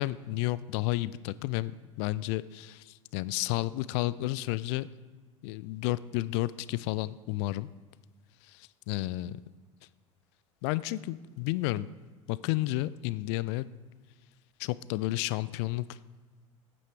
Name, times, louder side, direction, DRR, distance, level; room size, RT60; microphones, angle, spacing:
voice 1, 0.0-4.9 5.4-7.7 8.5-9.3 10.6-11.9 12.3-13.7 14.6-16.0, left 17 dB, 55° left, 19 dB, 0.4 m, -31 dB
9.0 x 8.9 x 4.7 m, 1.3 s
figure-of-eight pair, 75°, 17 cm